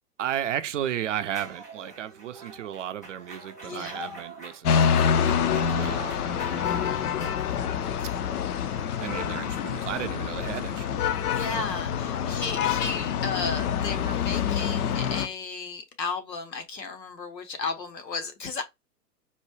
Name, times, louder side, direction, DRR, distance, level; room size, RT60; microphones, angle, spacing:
voice 1, 0.2-5.3 5.6-7.1 9.0-11.7, right 10 dB, 50° right, 0.5 m, -34 dB
sound 1, 1.3-13.3, right 2 dB, 15° left, 0.3 m, -45 dB
voice 2, 3.6-4.2 11.3-18.6, left 4 dB, 85° left, 1.1 m, -34 dB
sound 2, 4.6-15.3, left 7 dB, 65° left, 0.6 m, -26 dB
4.1 x 2.2 x 3.1 m
figure-of-eight pair, 120°, 49 cm